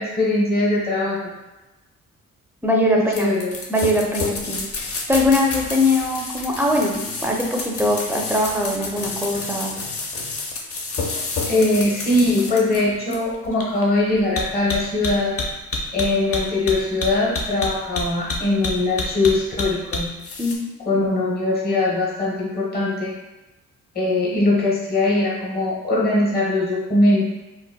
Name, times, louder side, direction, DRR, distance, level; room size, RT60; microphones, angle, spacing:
voice 1, 0.0-1.3 2.9-3.6 11.5-15.4 15.9-20.1 20.9-23.1 23.9-27.2, left 2 dB, 30° left, -4 dB, 1.0 m, -21 dB
voice 2, 2.6-3.3 3.7-4.6 5.1-9.7 20.4-20.5 20.9-21.0, left 1 dB, 5° right, 0 dB, 0.4 m, -21 dB
sound 1, 3.1-20.6, left 3 dB, 50° left, 0.6 m, -29 dB
3.9 x 2.1 x 2.2 m, 1.1 s
cardioid pair, 90°, 30 cm